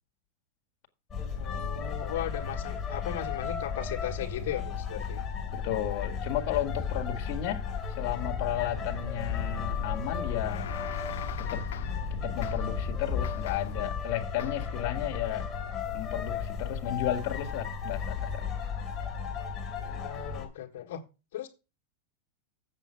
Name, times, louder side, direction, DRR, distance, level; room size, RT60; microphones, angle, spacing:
sound 1, 1.1-20.4, left 6 dB, 10° left, 3.2 m, -34 dB
voice 1, 1.3-5.2 19.8-21.0 21.3-21.5, left 10 dB, 70° left, 1.6 m, -37 dB
voice 2, 5.5-7.6 7.9-10.7 11.4-11.6 12.1-15.5 15.9-18.5, left 12 dB, 40° left, 1.9 m, -33 dB
sound 2, 8.2-13.2, right 6 dB, 80° right, 0.9 m, -44 dB
sound 3, 10.1-12.1 12.4-12.8 13.2-13.9 14.4-14.8, left 11 dB, 90° left, 0.7 m, -43 dB
7.7 x 7.5 x 5.7 m
supercardioid pair, 165°, 0 cm